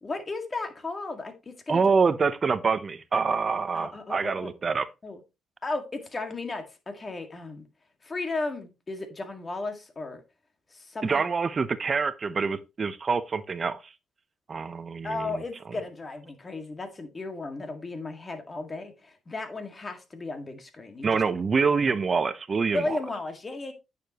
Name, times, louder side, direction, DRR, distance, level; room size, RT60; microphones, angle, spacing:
voice 1, 0.0-1.8 3.7-4.6 5.0-5.2 5.6-7.7 8.0-10.2 10.7-11.3 15.0-21.2 22.7-23.7, left 3 dB, 30° left, 1.9 m, -35 dB
voice 2, 1.7-4.9 11.0-13.9 14.5-15.4 21.0-23.0, right 5 dB, 40° right, 0.7 m, -26 dB
9.1 x 6.8 x 3.0 m
cardioid pair, 90°, 0 cm